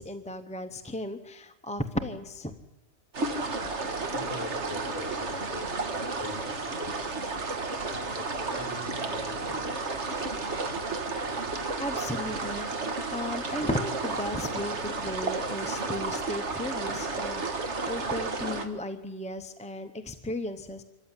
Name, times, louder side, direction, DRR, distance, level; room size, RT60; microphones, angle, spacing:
voice 1, 0.0-2.5 11.5-20.8, left 1 dB, 5° left, 7 dB, 0.6 m, -35 dB
sound 1, 3.1-18.7, right 3 dB, 55° right, 1.9 m, -32 dB
voice 2, 4.1-7.2 7.9-10.1, left 3 dB, 25° left, 1 dB, 6.6 m, -42 dB
25.5 x 14.5 x 9.8 m, 1.1 s
omnidirectional pair, 1.4 m